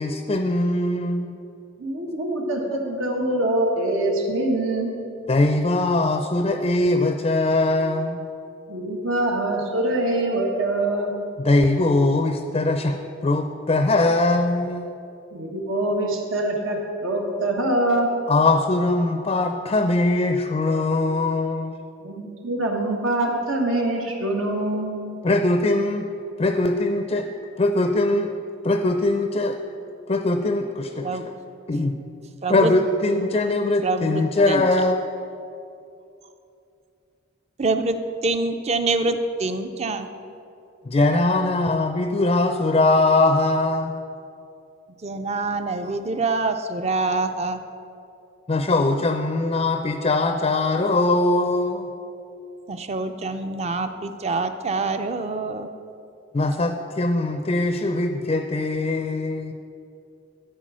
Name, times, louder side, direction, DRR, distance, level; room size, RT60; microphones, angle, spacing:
voice 1, 0.0-1.4 5.3-8.3 11.4-13.0 13.2-14.9 18.3-21.8 25.2-26.0 26.4-27.3 27.6-28.3 28.6-29.6 30.1-31.2 31.7-31.9 32.5-35.0 40.8-43.9 48.5-51.9 56.3-59.5, left 2 dB, 30° left, 6 dB, 0.4 m, -21 dB
voice 2, 1.8-4.9 8.7-11.1 15.3-18.1 22.0-25.2, right 1 dB, 90° right, 0 dB, 1.5 m, -24 dB
voice 3, 32.4-32.7 33.8-34.6 37.6-40.1 45.0-47.6 52.7-55.7, right 3 dB, 35° right, 9 dB, 0.4 m, -25 dB
13.5 x 4.6 x 6.2 m, 2.6 s
head